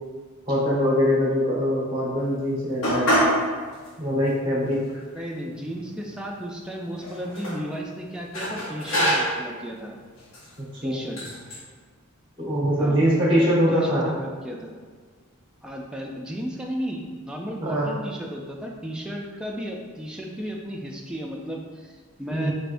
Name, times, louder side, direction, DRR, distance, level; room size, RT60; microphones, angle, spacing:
voice 1, 0.5-3.1 4.0-4.8 10.6-11.0 12.4-14.1 17.6-17.9 22.3-22.5, equal, 20° right, -6 dB, 1.0 m, -23 dB
sound 1, 2.8-3.4 3.8-3.9 4.7-4.8 5.1-6.1 7.0-7.6 8.3-9.5 10.2-10.5 11.2-11.6, equal, 65° left, 0.9 m, -25 dB
voice 2, 5.1-10.0 10.8-11.2 12.8-13.0 13.4-14.7 15.6-22.5, equal, 5° right, -1 dB, 0.3 m, -34 dB
4.2 x 3.4 x 2.5 m, 1.6 s
head